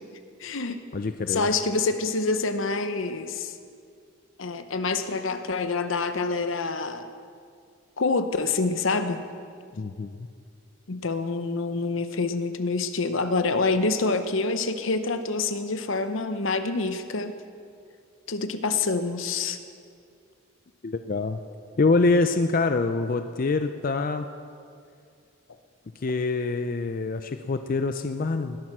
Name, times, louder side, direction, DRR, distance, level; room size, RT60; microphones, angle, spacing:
voice 1, 0.4-0.8 1.3-3.5 4.4-7.1 8.0-9.2 10.9-17.3 18.3-19.6, left 3 dB, 75° left, 9 dB, 0.9 m, -26 dB
voice 2, 0.9-1.5 9.7-10.3 20.8-21.4 21.8-24.3 26.0-28.6, left 3 dB, 45° left, 8 dB, 0.4 m, -25 dB
20.0 x 8.9 x 6.1 m, 2.3 s
head